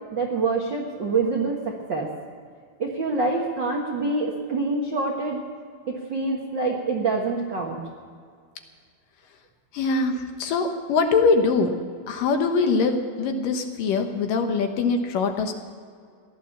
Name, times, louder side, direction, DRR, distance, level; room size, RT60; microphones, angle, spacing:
voice 1, 0.1-2.1 2.8-5.4 5.9-7.8, right 3 dB, 60° right, 0 dB, 1.2 m, -26 dB
voice 2, 9.7-11.7 12.1-15.5, left 4 dB, 70° left, 5 dB, 2.7 m, -23 dB
17.0 x 11.5 x 7.2 m, 2.1 s
omnidirectional pair, 4.3 m